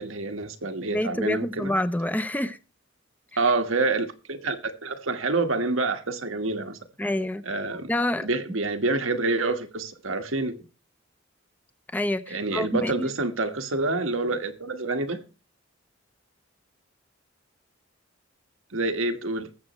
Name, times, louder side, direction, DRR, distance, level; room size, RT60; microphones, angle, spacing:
voice 1, 0.0-1.7 3.4-6.8 7.4-7.9 8.2-10.7 12.3-15.2 18.7-19.5, right 3 dB, 90° right, 1.6 m, -27 dB
voice 2, 0.9-2.6 7.0-7.4 7.9-8.3 11.9-13.1, left 1 dB, 10° left, 0.7 m, -27 dB
20.0 x 7.7 x 3.2 m
head